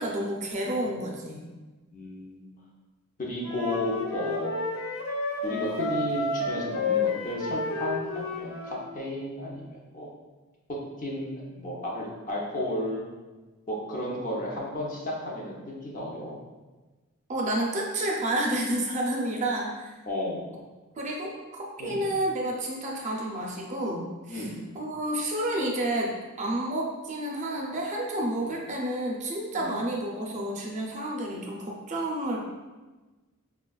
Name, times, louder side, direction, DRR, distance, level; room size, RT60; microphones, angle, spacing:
voice 1, 0.0-1.4 17.3-19.9 21.0-26.1 26.4-32.4, right 1 dB, 35° right, -1 dB, 0.4 m, -30 dB
voice 2, 1.9-2.5 3.2-4.6 5.4-10.1 11.0-13.0 13.7-16.4 20.1-20.5 21.8-22.0 24.3-24.6 29.5-29.7, left 1 dB, 40° left, -3 dB, 0.6 m, -33 dB
Wind instrument woodwind instrument, 3.4-8.8, left 3 dB, 85° left, 0.5 m, -30 dB
4.2 x 2.2 x 2.2 m, 1.2 s
head